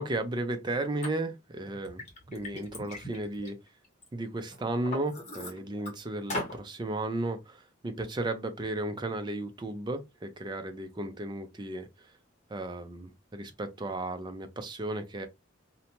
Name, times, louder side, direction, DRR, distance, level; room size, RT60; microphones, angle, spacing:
voice 1, 0.0-2.0 2.3-3.6 4.1-12.1 12.5-15.3, right 2 dB, 20° right, 0.4 m, -34 dB
Liquid, 1.0-1.1 1.7-4.1 4.5-5.9 6.3-6.6, left 2 dB, 35° left, 0.9 m, -39 dB
2.7 x 2.1 x 2.8 m
head